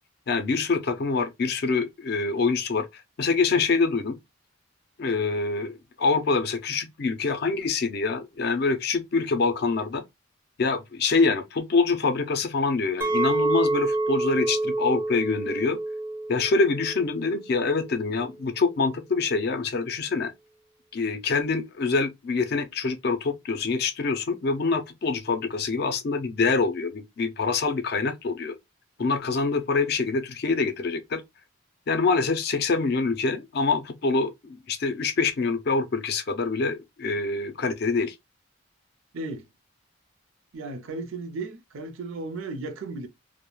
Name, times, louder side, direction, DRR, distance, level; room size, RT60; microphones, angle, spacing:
voice 1, 0.3-4.2 5.0-10.0 10.6-15.8 16.3-20.3 20.9-28.6 29.0-31.2 31.9-38.1, left 4 dB, 50° left, 0.4 m, -25 dB
Chink clink, 13.0-18.2, right 2 dB, 10° right, 0.4 m, -28 dB
voice 2, 39.1-39.5 40.5-43.1, right 3 dB, 80° right, 0.5 m, -35 dB
2.2 x 2.1 x 2.9 m
head